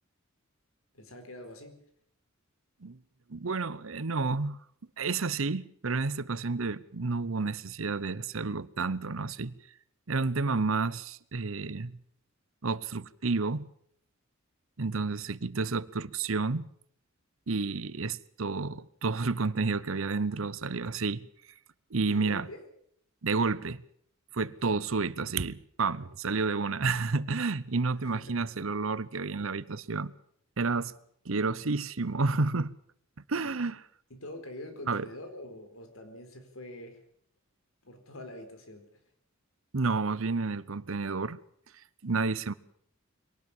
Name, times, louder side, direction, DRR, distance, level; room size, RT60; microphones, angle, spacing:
voice 1, 0.9-1.8 22.0-22.6 28.0-28.4 34.1-37.0 37.8-38.8, left 1 dB, 80° left, 4.5 m, -45 dB
voice 2, 3.3-4.6 5.0-9.5 10.1-12.0 12.6-13.7 14.8-16.7 17.5-21.3 21.9-22.5 23.2-23.8 24.3-30.1 30.6-30.9 31.2-32.7 33.3-33.9 34.9-35.1 39.7-41.4 42.0-42.5, right 4 dB, 70° right, 0.9 m, -30 dB
22.5 x 18.0 x 7.4 m
head